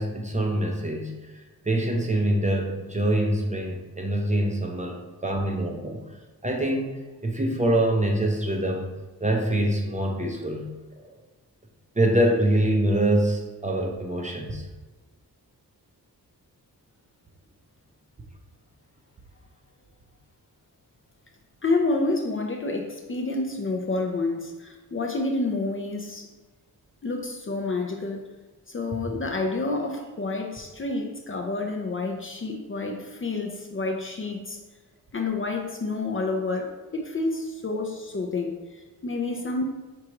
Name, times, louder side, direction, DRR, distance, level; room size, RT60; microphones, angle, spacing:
voice 1, 0.0-6.0 6.4-8.9 9.2-10.7 12.0-14.7, right 1 dB, 20° right, 1 dB, 0.5 m, -25 dB
voice 2, 21.6-26.3 27.0-28.3 28.7-34.6 35.1-39.7, left 3 dB, 35° left, 2 dB, 0.5 m, -29 dB
4.6 x 3.6 x 2.9 m, 1.2 s
wide cardioid pair, 130°, 38 cm